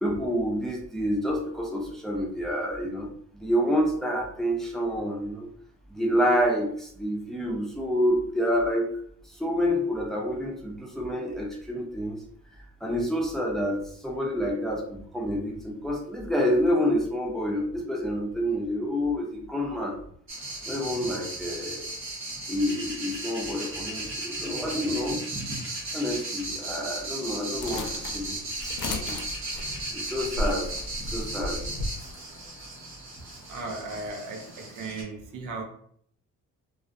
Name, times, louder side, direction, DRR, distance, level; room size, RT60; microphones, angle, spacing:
voice 1, 0.0-3.1 3.3-5.5 5.9-8.9 9.3-12.2 12.8-20.0 20.7-21.9 22.5-25.2 25.9-29.1 29.9-31.6, equal, ahead, 0.6 m, -28 dB
sound 1, 20.3-35.0, right 2 dB, 45° right, 0.9 m, -36 dB
sound 2, 27.6-32.0, left 2 dB, 80° left, 0.5 m, -34 dB
voice 2, 33.5-35.6, right 3 dB, 85° right, 0.6 m, -36 dB
2.4 x 2.1 x 2.5 m
cardioid pair, 90°, 30 cm